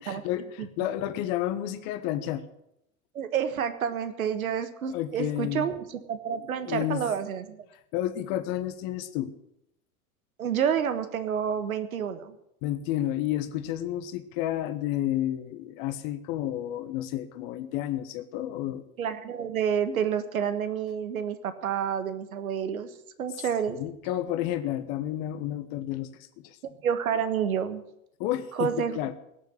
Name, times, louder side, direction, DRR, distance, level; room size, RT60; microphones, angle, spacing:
voice 1, 0.0-2.4 4.9-5.7 6.4-7.1 7.9-9.3 12.6-18.8 23.4-26.6 28.2-29.1, left 12 dB, 55° left, 11 dB, 1.3 m, -31 dB
voice 2, 3.1-7.6 10.4-12.3 19.0-22.9 23.2-23.8 26.8-27.8 28.6-29.1, right 8 dB, 80° right, 10 dB, 1.5 m, -29 dB
17.5 x 7.2 x 9.5 m, 0.80 s
figure-of-eight pair, 80°, 42 cm